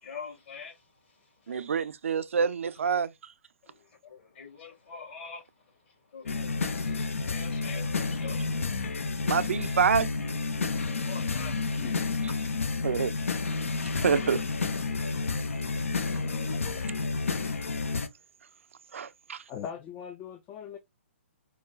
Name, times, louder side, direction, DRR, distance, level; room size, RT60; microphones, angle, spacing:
voice 1, 0.0-1.7 3.6-8.6 11.0-11.8 12.3-12.5, left 5 dB, 50° left, 2.1 m, -46 dB
voice 2, 1.5-3.1 9.3-10.1 12.8-13.1 13.9-14.4 18.9-19.4, right 6 dB, 70° right, 0.4 m, -26 dB
sound 1, 6.3-18.1, left 4 dB, 75° left, 0.6 m, -30 dB
voice 3, 19.5-20.8, left 8 dB, 25° left, 0.4 m, -40 dB
4.7 x 2.1 x 2.3 m
hypercardioid pair, 130°, 7 cm